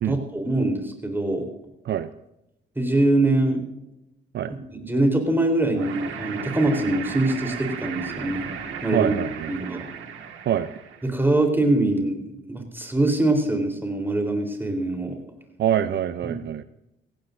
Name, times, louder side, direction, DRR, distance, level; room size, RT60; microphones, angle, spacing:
voice 1, 0.0-1.5 2.8-3.6 4.5-8.6 8.8-9.1 9.5-9.8 11.0-12.2 12.5-15.2 16.2-16.3, right 2 dB, 10° right, 3 dB, 3.9 m, -23 dB
sound 1, 5.7-11.2, right 7 dB, 80° right, 1.9 m, -35 dB
voice 2, 8.9-9.5 10.5-10.7 15.6-16.6, right 10 dB, 60° right, 12 dB, 0.6 m, -24 dB
17.5 x 15.5 x 2.7 m, 0.86 s
cardioid pair, 90°, 20 cm